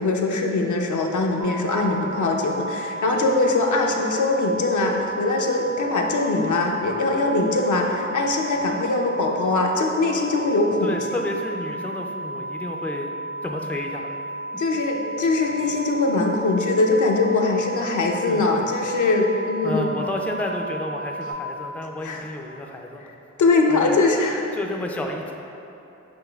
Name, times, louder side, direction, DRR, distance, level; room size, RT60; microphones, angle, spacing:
voice 1, 0.0-10.9 14.6-19.9 22.0-22.2 23.4-24.5, left 3 dB, 70° left, 1 dB, 0.5 m, -22 dB
sound 1, 1.4-21.3, right 2 dB, 85° right, 0.8 m, -33 dB
voice 2, 10.8-13.1 13.4-14.2 18.3-18.4 19.6-23.1 23.7-24.0 24.5-25.3, left 1 dB, 5° left, 1 dB, 0.3 m, -30 dB
6.8 x 3.1 x 2.3 m, 2.9 s
cardioid pair, 65°, 31 cm